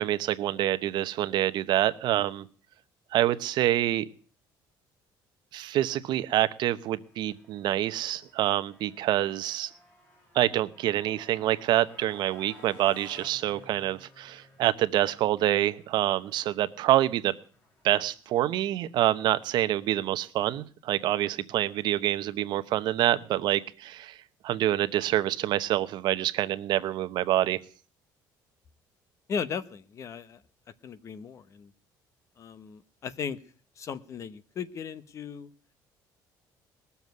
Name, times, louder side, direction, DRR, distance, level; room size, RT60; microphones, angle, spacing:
voice 1, 0.0-2.4 3.1-4.1 5.5-9.7 10.3-17.3 17.8-24.2 24.4-27.6, right 13 dB, 65° right, 13 dB, 0.9 m, -26 dB
Motorcycle, 6.9-19.0, left 2 dB, 20° left, 6.0 m, -56 dB
voice 2, 29.3-30.4 30.8-31.7 32.4-33.4 33.8-35.5, left 6 dB, 40° left, 15 dB, 1.0 m, -36 dB
20.5 x 7.1 x 9.4 m, 0.42 s
cardioid pair, 155°, 8 cm